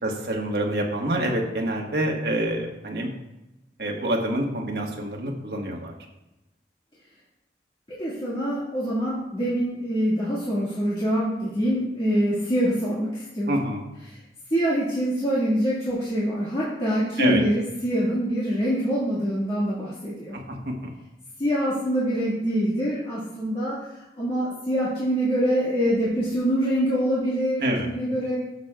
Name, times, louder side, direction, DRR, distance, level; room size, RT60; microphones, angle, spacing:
voice 1, 0.0-3.1 3.8-5.9 13.5-13.8 17.2-17.4 20.6-20.9 27.6-27.9, right 1 dB, 65° right, 0 dB, 1.3 m, -26 dB
voice 2, 7.9-13.7 14.1-14.2 14.5-20.4 21.4-28.4, equal, 30° left, -9 dB, 1.7 m, -25 dB
11.5 x 7.2 x 2.3 m, 0.96 s
head